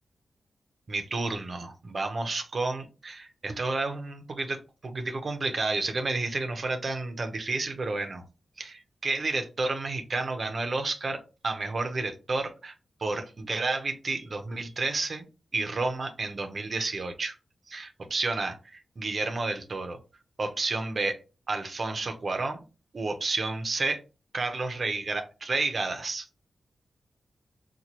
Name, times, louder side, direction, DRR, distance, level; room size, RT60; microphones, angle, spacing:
voice 1, 0.9-8.2 8.6-12.7 13.0-15.2 15.5-17.4 17.7-20.0 20.4-21.2 21.5-22.6 22.9-24.0 24.3-26.3, right 3 dB, 40° right, 0.5 m, -31 dB
4.1 x 2.2 x 2.9 m
wide cardioid pair, 175°, 0 cm